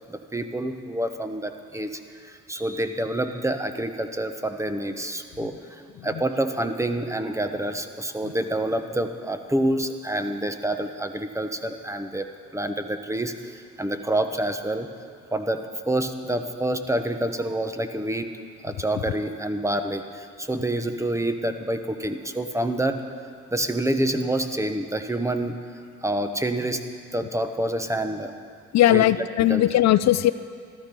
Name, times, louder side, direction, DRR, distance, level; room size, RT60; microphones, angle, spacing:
voice 1, 0.1-12.3 12.5-14.9 15.3-18.3 18.6-23.0 23.5-25.6 26.0-26.8 27.1-28.3 28.9-29.0 29.5-29.6, right 1 dB, 10° right, 7 dB, 0.9 m, -27 dB
voice 2, 28.7-30.3, left 13 dB, 65° left, 14 dB, 0.4 m, -19 dB
13.5 x 13.0 x 5.4 m, 2.2 s
cardioid pair, 90°, 30 cm